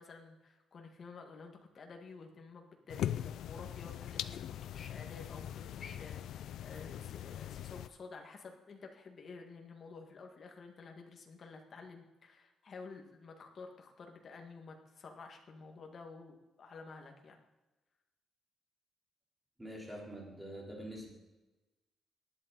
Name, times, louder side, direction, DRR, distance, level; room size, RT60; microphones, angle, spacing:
voice 1, 0.0-17.4, left 4 dB, 35° left, 3 dB, 1.8 m, -51 dB
sound 1, 2.9-7.9, left 11 dB, 70° left, 0.4 m, -41 dB
voice 2, 19.6-21.1, equal, 5° right, -2 dB, 3.7 m, -45 dB
19.0 x 11.0 x 4.1 m, 1.1 s
cardioid pair, 175°, 0 cm